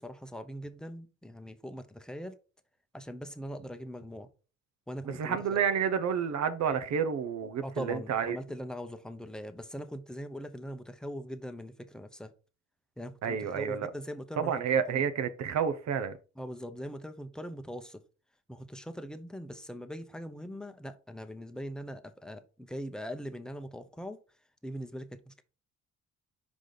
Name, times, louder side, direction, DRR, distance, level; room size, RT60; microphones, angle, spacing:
voice 1, 0.0-2.3 2.9-4.3 4.9-5.4 7.6-12.3 13.0-14.5 14.9-15.0 16.4-18.0 18.5-24.2 24.6-25.4, equal, ahead, 0.7 m, -41 dB
voice 2, 5.0-8.4 13.2-13.9 14.4-16.2, right 7 dB, 65° right, 0.8 m, -30 dB
5.2 x 4.9 x 3.9 m
cardioid pair, 90°, 30 cm